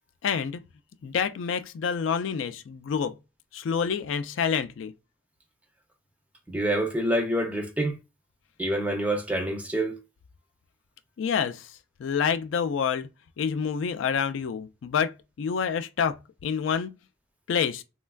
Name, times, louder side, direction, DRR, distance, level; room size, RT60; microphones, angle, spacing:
voice 1, 0.2-0.6 1.0-3.1 3.5-4.9 11.2-11.7 12.0-13.1 13.4-16.9 17.5-17.8, left 7 dB, 70° left, 0.3 m, -28 dB
voice 2, 6.5-8.0 8.6-10.0, right 1 dB, 5° right, 0.5 m, -27 dB
3.2 x 2.3 x 2.2 m
head